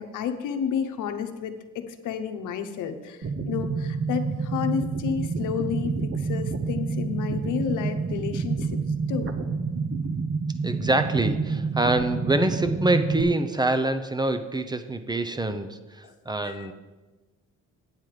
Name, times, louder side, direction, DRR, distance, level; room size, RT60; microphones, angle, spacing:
voice 1, 0.0-8.7 9.1-9.3 16.0-16.1 16.4-16.7, left 7 dB, 85° left, 8 dB, 0.9 m, -31 dB
sound 1, 3.2-13.2, right 4 dB, 45° right, 0.9 m, -28 dB
voice 2, 10.6-16.7, right 2 dB, 15° right, 9 dB, 0.7 m, -25 dB
9.0 x 7.7 x 4.9 m, 1.2 s
cardioid pair, 90°, 30 cm